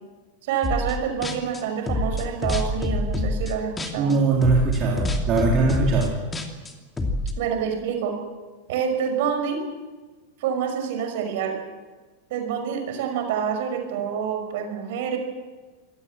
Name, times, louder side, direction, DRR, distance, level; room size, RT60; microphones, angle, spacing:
voice 1, 0.4-4.1 7.4-8.2 8.7-9.6 10.4-11.6 12.3-15.2, right 7 dB, 50° right, 5 dB, 5.7 m, -27 dB
sound 1, 0.6-1.0 1.2-4.1 4.4-7.3, left 2 dB, 15° left, 2.7 m, -26 dB
voice 2, 4.0-6.1, right 3 dB, 35° right, -1 dB, 3.7 m, -21 dB
25.5 x 18.0 x 7.6 m, 1.3 s
figure-of-eight pair, 90°, 0 cm